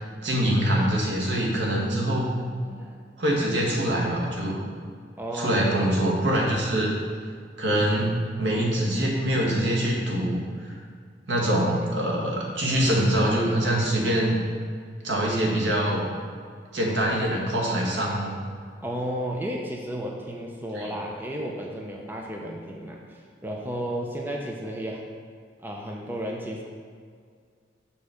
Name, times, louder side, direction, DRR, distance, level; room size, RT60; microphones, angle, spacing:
voice 1, 0.2-2.3 3.2-4.6 5.3-6.9 7.6-10.7 11.3-14.4 15.0-16.0 16.7-18.4 20.8-20.9, right 1 dB, 80° right, -3 dB, 1.8 m, -24 dB
voice 2, 2.6-3.0 5.2-5.9 18.8-25.0 25.6-26.6, equal, 10° right, -1 dB, 0.7 m, -33 dB
7.0 x 4.2 x 6.5 m, 2.1 s
head